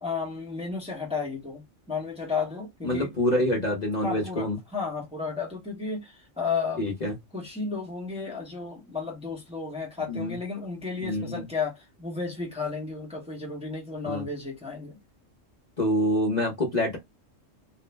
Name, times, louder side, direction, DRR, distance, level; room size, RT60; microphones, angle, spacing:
voice 1, 0.0-3.1 4.0-6.9 7.3-15.0, left 4 dB, 5° right, 0.7 m, -33 dB
voice 2, 2.8-4.6 6.8-7.1 10.1-10.3 11.0-11.4 14.1-14.3 15.8-17.0, left 1 dB, 40° left, 0.8 m, -26 dB
2.5 x 2.0 x 3.1 m
omnidirectional pair, 1.3 m